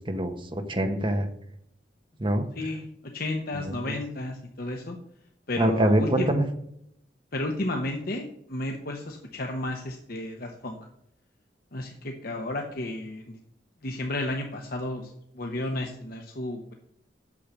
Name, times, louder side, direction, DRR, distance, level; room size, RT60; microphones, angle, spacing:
voice 1, 0.1-1.3 2.2-2.5 5.6-6.4, right 1 dB, 30° right, 6 dB, 1.2 m, -24 dB
voice 2, 2.5-5.0 5.5-6.3 7.3-10.8 11.7-13.4 13.8-16.7, left 1 dB, 55° left, 2 dB, 1.0 m, -32 dB
8.7 x 6.6 x 6.8 m, 0.74 s
head